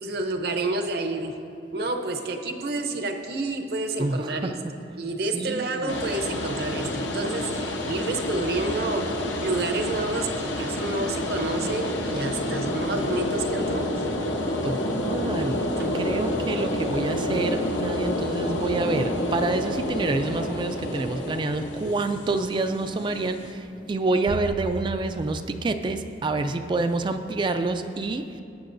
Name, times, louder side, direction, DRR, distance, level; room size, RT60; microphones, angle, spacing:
voice 1, 0.0-1.4 1.7-4.6 5.0-14.0 15.8-15.9, right 2 dB, 60° right, 5 dB, 0.7 m, -29 dB
voice 2, 4.0-4.6 5.2-6.0 14.6-15.7 15.9-28.4, right 3 dB, 25° right, 8 dB, 0.3 m, -27 dB
sound 1, 5.9-23.5, left 1 dB, 85° left, 1.0 m, -29 dB
16.5 x 8.9 x 2.6 m, 2.6 s
head